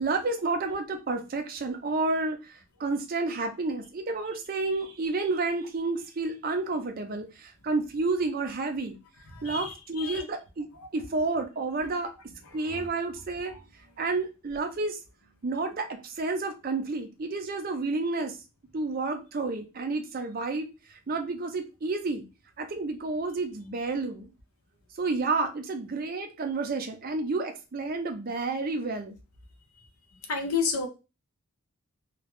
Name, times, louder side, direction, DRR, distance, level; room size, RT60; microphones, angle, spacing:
voice 1, 0.0-2.5 2.8-9.0 9.4-12.1 12.5-13.6 14.0-15.0 15.4-18.4 18.7-22.3 22.6-24.3 25.0-29.2, right 3 dB, 40° right, 5 dB, 0.4 m, -30 dB
voice 2, 30.3-30.9, left 5 dB, 75° left, 4 dB, 0.6 m, -29 dB
2.3 x 2.0 x 2.9 m, 0.28 s
head